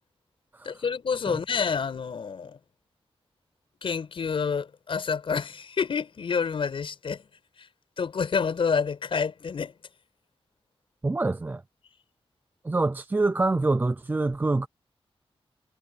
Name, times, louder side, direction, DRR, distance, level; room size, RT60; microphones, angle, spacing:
voice 1, 0.6-2.6 3.8-7.2 7.6-7.7 8.0-9.7, left 6 dB, 60° left, 5.1 m, -28 dB
voice 2, 11.0-11.6 12.6-14.7, right 3 dB, 20° right, 0.5 m, -25 dB
wide cardioid pair, 180°, 10 cm